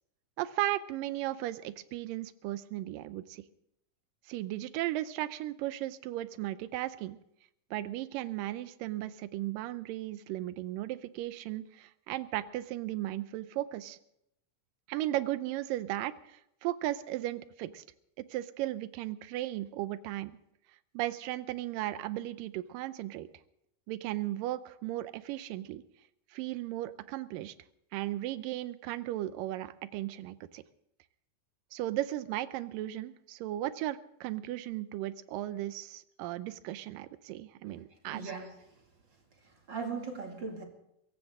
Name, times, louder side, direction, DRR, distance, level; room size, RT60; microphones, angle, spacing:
voice 1, 0.4-3.4 4.3-7.2 7.7-14.0 14.9-17.8 18.2-20.4 20.9-23.3 23.9-25.8 26.3-27.5 27.9-30.6 31.7-38.2, right 15 dB, 85° right, 14 dB, 2.4 m, -36 dB
voice 2, 38.1-38.6 39.4-40.6, right 5 dB, 35° right, 2 dB, 2.6 m, -38 dB
22.0 x 16.5 x 3.7 m, 0.79 s
omnidirectional pair, 3.8 m